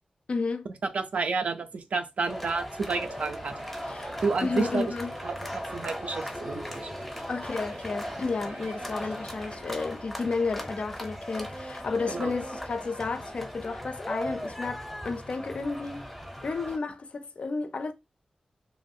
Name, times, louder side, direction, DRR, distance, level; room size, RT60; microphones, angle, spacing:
voice 1, 0.3-0.7 3.8-4.1 4.4-5.1 6.1-6.2 7.3-16.1 16.4-17.9, left 4 dB, 55° left, 0.3 m, -32 dB
voice 2, 0.9-3.5 4.2-4.9 5.2-6.9 12.1-12.3, right 4 dB, 70° right, 0.4 m, -30 dB
sound 1, 2.3-16.8, equal, ahead, 0.6 m, -38 dB
sound 2, 2.9-10.0, right 2 dB, 90° right, 1.2 m, -45 dB
3.0 x 2.3 x 2.6 m
wide cardioid pair, 125°, 2 cm